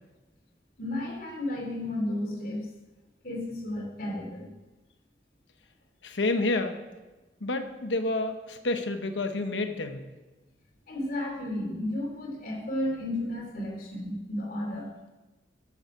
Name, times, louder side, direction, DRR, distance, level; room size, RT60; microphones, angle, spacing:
voice 1, 0.8-2.7 3.2-4.5 10.9-14.9, left 1 dB, 50° left, -1 dB, 2.8 m, -33 dB
voice 2, 6.0-6.8 7.4-10.0, left 2 dB, 80° left, 7 dB, 1.0 m, -29 dB
12.0 x 7.2 x 6.0 m, 1.2 s
head